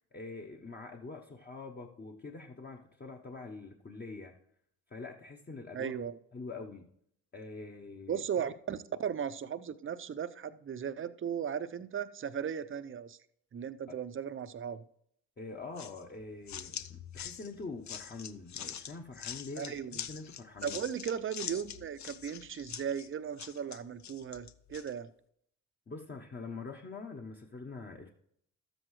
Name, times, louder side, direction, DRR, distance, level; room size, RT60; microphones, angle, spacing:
voice 1, 0.1-4.4 4.9-6.0 6.3-6.9 7.3-8.2 13.9-14.0 15.4-20.8 25.9-28.1, left 3 dB, 25° left, 2 dB, 1.1 m, -45 dB
voice 2, 5.7-6.2 8.1-13.2 13.5-14.8 19.6-20.0 20.6-25.1, right 8 dB, 35° right, 13 dB, 0.7 m, -37 dB
sound 1, 15.8-24.9, left 9 dB, 50° left, 0.7 m, -44 dB
12.5 x 7.7 x 3.2 m, 0.71 s
hypercardioid pair, 55°, 38 cm